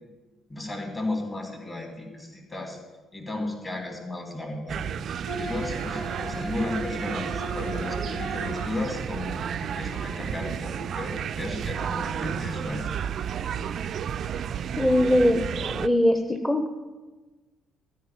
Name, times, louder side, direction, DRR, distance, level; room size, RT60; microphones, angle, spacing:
voice 1, 0.5-2.8 3.1-4.8 5.1-12.9, left 2 dB, 25° left, 1 dB, 3.4 m, -34 dB
sound 1, 4.7-15.9, right 8 dB, 50° right, 0.4 m, -32 dB
Bowed string instrument, 5.2-8.8, right 1 dB, 80° left, 2.0 m, -36 dB
voice 2, 14.8-16.7, left 1 dB, 10° left, 5 dB, 1.0 m, -22 dB
14.0 x 4.9 x 9.0 m, 1.2 s
figure-of-eight pair, 45°, 0 cm